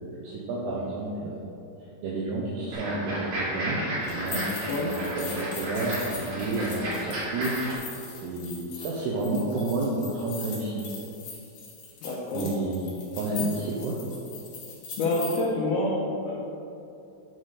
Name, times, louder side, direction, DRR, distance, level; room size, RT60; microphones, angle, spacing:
voice 1, 0.0-1.5 2.0-7.9 8.2-10.8 12.3-14.0, right 2 dB, 90° right, -3 dB, 2.4 m, -31 dB
sound 1, 2.7-7.7, right 1 dB, 50° right, 2.8 m, -33 dB
sound 2, 4.0-15.4, left 4 dB, 60° left, 2.2 m, -41 dB
voice 2, 4.7-5.0 12.0-12.5 15.0-16.3, left 2 dB, 90° left, -5 dB, 2.1 m, -27 dB
9.9 x 4.4 x 4.9 m, 2.8 s
omnidirectional pair, 5.8 m